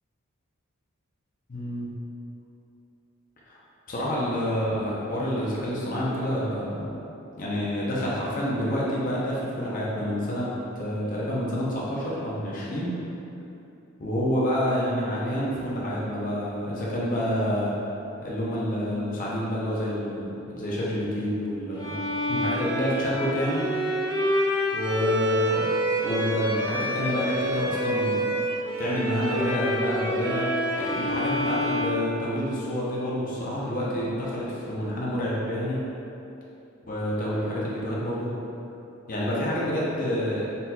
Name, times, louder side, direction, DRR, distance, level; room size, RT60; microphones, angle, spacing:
voice 1, 1.5-1.9 3.5-3.6 3.9-6.9 7.4-10.5 10.8-12.9 14.0-17.7 18.2-22.0 22.3-23.7 24.7-25.7 26.0-28.2 28.8-30.5 30.8-35.8 36.9-38.3 39.1-40.5, equal, 40° left, -7 dB, 0.6 m, -28 dB
Bowed string instrument, 21.7-32.7, equal, 10° right, 1.3 m, -27 dB
4.1 x 4.1 x 2.3 m, 2.8 s
head